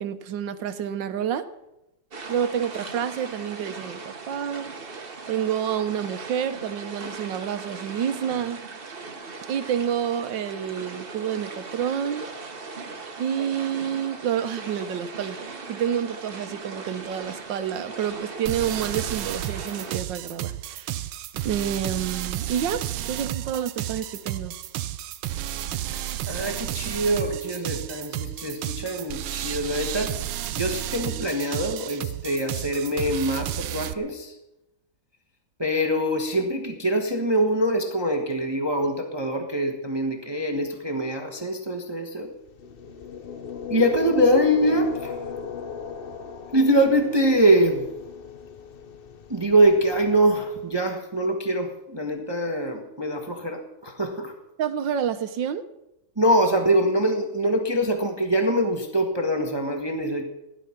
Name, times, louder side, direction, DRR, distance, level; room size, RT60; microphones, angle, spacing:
voice 1, 0.0-1.5 2.3-4.7 5.3-8.6 9.5-12.2 13.2-21.0 21.4-24.6 54.6-55.6, right 9 dB, 70° right, 11 dB, 1.6 m, -28 dB
sound 1, 2.1-20.0, right 4 dB, 35° right, 1.2 m, -39 dB
sound 2, 18.5-33.9, right 12 dB, 90° right, 1.5 m, -32 dB
voice 2, 26.3-30.2 30.5-34.3 35.6-42.3 43.7-45.2 46.5-47.8 49.3-54.3 56.2-60.2, right 1 dB, 15° right, 4 dB, 1.1 m, -23 dB
sound 3, 42.5-50.6, left 6 dB, 70° left, 0.5 m, -36 dB
16.0 x 11.0 x 5.8 m, 0.92 s
omnidirectional pair, 2.1 m